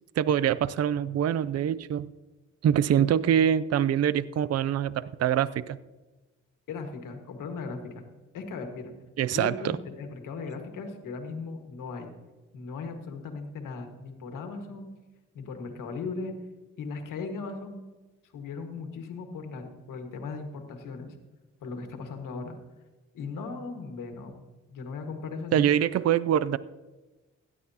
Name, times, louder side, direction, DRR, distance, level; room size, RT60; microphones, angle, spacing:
voice 1, 0.2-2.1 2.6-5.8 9.2-9.8 25.5-26.6, right 9 dB, 55° right, 17 dB, 0.5 m, -24 dB
voice 2, 6.7-8.0 8.3-8.9 9.3-12.1 12.5-14.9 15.3-16.3 16.8-17.8 18.3-21.1 21.6-22.6 23.1-24.3 24.7-25.7, left 4 dB, 85° left, 4 dB, 1.7 m, -37 dB
16.5 x 11.0 x 2.9 m, 1.1 s
cardioid pair, 70°, 31 cm